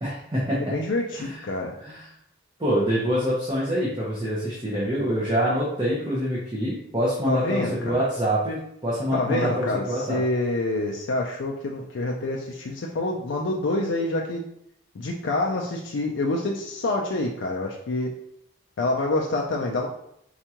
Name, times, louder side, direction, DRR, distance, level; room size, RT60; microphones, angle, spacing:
voice 1, 0.0-0.7 1.1-1.4 1.8-2.0 2.6-10.2, equal, 20° right, -7 dB, 0.7 m, -26 dB
voice 2, 0.6-1.8 7.3-8.0 9.1-14.4 14.9-18.1 18.8-19.9, left 2 dB, 65° left, -1 dB, 0.4 m, -27 dB
4.4 x 2.3 x 2.8 m, 0.74 s
head